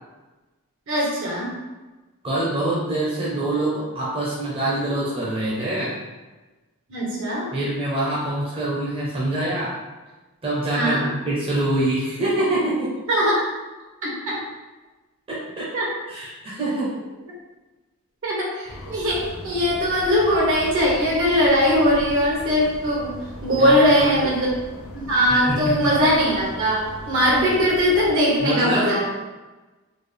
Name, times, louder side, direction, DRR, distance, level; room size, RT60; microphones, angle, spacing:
voice 1, 0.9-1.5 6.9-7.5 10.7-11.1 13.1-13.4 14.0-14.4 15.7-15.9 18.2-23.1 23.4-24.5 24.9-29.0, equal, 60° right, -4 dB, 1.2 m, -20 dB
voice 2, 2.2-6.0 7.5-9.8 10.4-12.9 15.3-15.7 16.1-16.9 23.5-24.3 25.5-25.9 28.4-28.9, right 1 dB, 25° right, -7 dB, 0.7 m, -25 dB
sound 1, 18.7-28.1, equal, 80° left, 0.9 m, -39 dB
3.9 x 2.2 x 3.4 m, 1.2 s
head